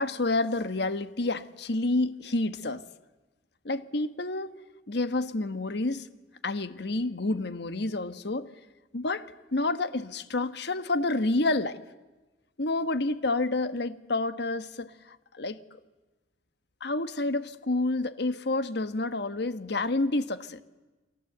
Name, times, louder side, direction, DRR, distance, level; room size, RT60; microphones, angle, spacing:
voice 1, 0.0-2.8 3.6-4.6 4.9-6.1 6.4-8.5 8.9-11.8 12.6-15.6 16.8-20.6, left 2 dB, 65° left, 11 dB, 1.3 m, -29 dB
30.0 x 23.5 x 8.0 m, 1.2 s
head